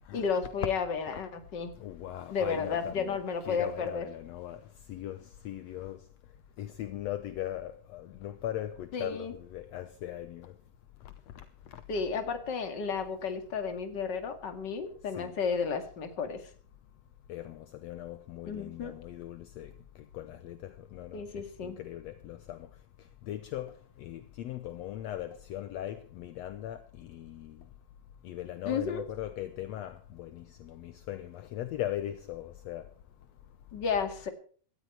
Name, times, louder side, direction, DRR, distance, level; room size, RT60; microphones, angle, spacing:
voice 1, 0.1-1.7 2.3-4.1 8.9-9.3 11.9-16.5 18.5-18.9 21.1-21.8 28.6-29.1 33.7-34.3, left 5 dB, 40° left, 2.4 m, -32 dB
voice 2, 1.8-3.2 3.4-10.6 11.0-11.8 15.2-15.4 17.3-27.7 28.2-32.9, left 12 dB, 70° left, 1.9 m, -40 dB
18.0 x 13.5 x 4.5 m
omnidirectional pair, 3.3 m